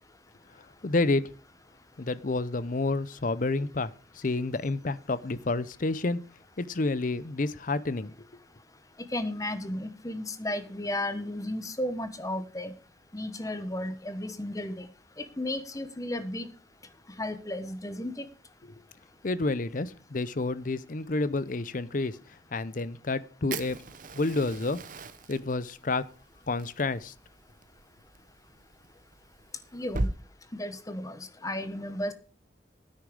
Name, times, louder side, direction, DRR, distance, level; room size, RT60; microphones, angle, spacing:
voice 1, 0.8-1.3 2.0-6.2 6.6-8.1 19.2-22.2 22.5-23.8 24.1-24.8 25.3-26.0 26.5-27.1, left 3 dB, 45° left, 0.6 m, -29 dB
voice 2, 9.1-12.7 13.1-14.9 15.2-16.5 17.2-18.2 29.7-30.1 30.5-32.1, left 1 dB, 20° left, 1.1 m, -34 dB
Fire, 23.5-30.1, right 2 dB, 45° right, 0.9 m, -39 dB
9.9 x 9.6 x 5.0 m
head